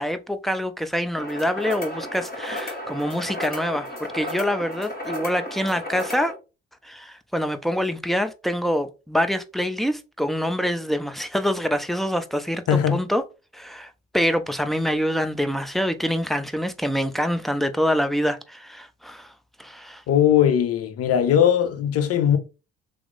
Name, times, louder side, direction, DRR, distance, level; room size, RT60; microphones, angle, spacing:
voice 1, 0.0-6.3 6.8-13.2 13.5-19.3 19.6-20.0, equal, ahead, 0.4 m, -25 dB
sound 1, 1.2-6.3, left 1 dB, 30° left, 1.6 m, -33 dB
voice 2, 12.7-13.0 20.1-22.4, left 9 dB, 55° left, 0.7 m, -19 dB
3.0 x 2.0 x 3.8 m
hypercardioid pair, 50°, 29 cm